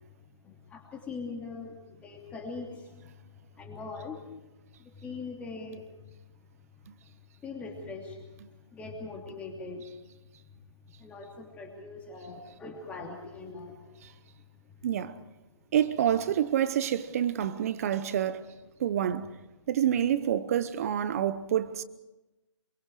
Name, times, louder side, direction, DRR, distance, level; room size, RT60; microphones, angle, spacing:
voice 1, 0.4-3.1 3.5-4.2 4.8-5.8 7.4-9.8 11.0-13.7, left 3 dB, 10° left, 2.8 m, -41 dB
voice 2, 14.8-15.2 15.7-18.5 18.8-19.3 19.7-21.8, right 10 dB, 30° right, 0.9 m, -28 dB
26.5 x 23.5 x 4.8 m
figure-of-eight pair, 155°, 16 cm